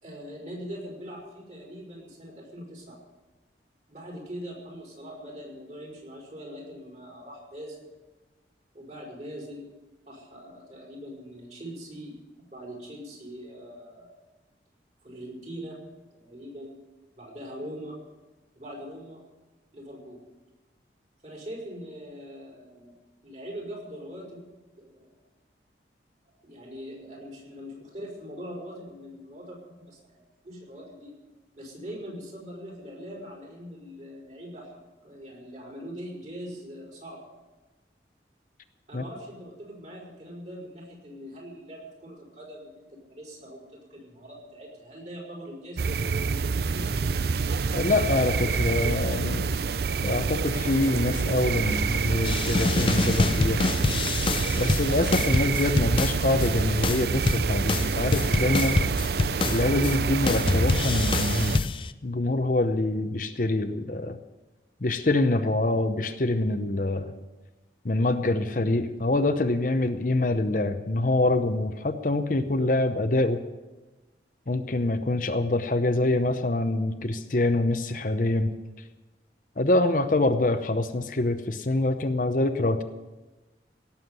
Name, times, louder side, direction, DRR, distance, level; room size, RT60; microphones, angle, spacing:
voice 1, 0.0-3.0 3.9-7.9 8.7-9.7 10.0-12.2 12.5-14.1 15.0-15.8 16.1-16.8 17.2-18.0 18.5-19.2 19.7-20.2 21.2-22.9 23.2-24.4 24.8-25.2 26.4-30.0 30.4-31.1 31.5-37.2 38.9-47.1, equal, 40° right, -2 dB, 5.0 m, -42 dB
sound 1, 45.8-61.6, right 5 dB, 60° right, 0.5 m, -27 dB
voice 2, 47.7-49.5 50.0-53.6 54.5-58.8 59.5-61.6 62.0-64.2 64.8-67.1 67.8-73.4 74.5-78.5 79.6-82.8, left 2 dB, 45° left, 8 dB, 0.8 m, -25 dB
sound 2, 52.2-56.5 56.8-60.0 60.3-61.9, left 3 dB, 30° left, 0.4 m, -26 dB
17.5 x 7.3 x 9.5 m, 1.1 s
head